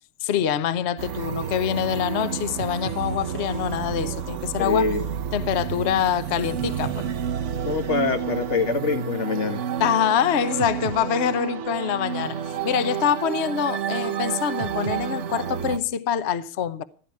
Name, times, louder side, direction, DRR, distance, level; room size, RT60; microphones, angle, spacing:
voice 1, 0.2-4.9 5.3-7.1 9.8-16.8, left 9 dB, 55° left, 0.7 m, -25 dB
sound 1, 1.0-15.8, right 8 dB, 80° right, 0.6 m, -30 dB
voice 2, 4.6-5.0 7.6-9.6, left 4 dB, 35° left, 1.9 m, -24 dB
15.0 x 13.5 x 4.6 m
omnidirectional pair, 2.4 m